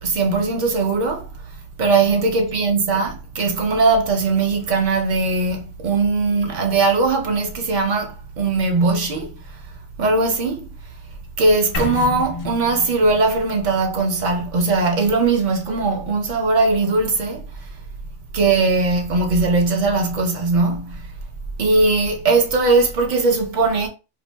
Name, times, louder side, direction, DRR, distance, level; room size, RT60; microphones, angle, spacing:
voice 1, 0.0-1.3 1.8-9.4 10.0-10.7 11.4-17.5 18.3-21.1 21.6-23.9, right 3 dB, 55° right, 0.6 m, -19 dB
sound 1, 11.7-15.7, left 4 dB, 60° left, 0.6 m, -32 dB
2.7 x 2.6 x 2.2 m
omnidirectional pair, 1.2 m